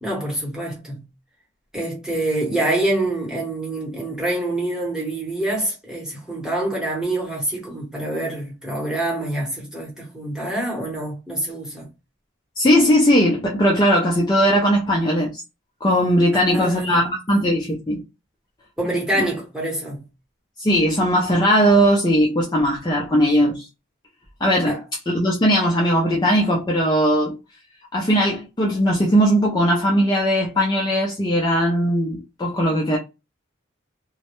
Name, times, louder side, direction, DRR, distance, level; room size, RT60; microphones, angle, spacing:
voice 1, 0.0-1.0 1.7-11.8 16.3-17.0 18.8-20.0 24.7-24.8, right 1 dB, 5° right, 0.9 m, -26 dB
voice 2, 12.6-15.4 15.8-18.0 20.6-23.7 24.4-24.7 25.1-27.4 27.9-33.0, equal, 20° left, 0.4 m, -19 dB
2.2 x 2.0 x 2.9 m
head